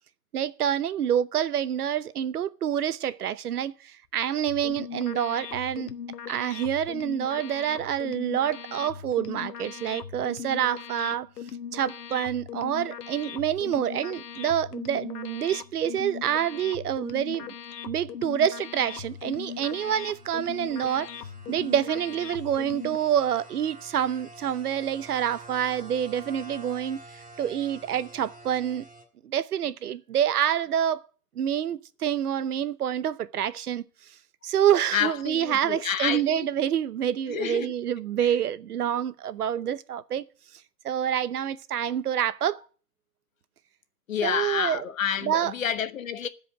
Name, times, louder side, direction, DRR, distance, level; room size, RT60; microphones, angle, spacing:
voice 1, 0.3-5.9 6.3-11.3 11.7-17.5 17.8-21.1 21.5-27.0 27.4-28.8 29.2-31.0 31.4-33.8 34.4-40.2 40.8-42.6 44.2-44.8 45.2-45.5, right 9 dB, 70° right, 0.8 m, -27 dB
sound 1, 4.5-23.0, left 8 dB, 75° left, 1.2 m, -39 dB
sound 2, 18.8-29.0, right 2 dB, 10° right, 1.7 m, -49 dB
voice 2, 34.9-36.5 37.3-37.7 38.2-38.4 44.1-46.3, left 8 dB, 55° left, 1.0 m, -29 dB
14.0 x 5.1 x 8.9 m
hypercardioid pair, 170°, 48 cm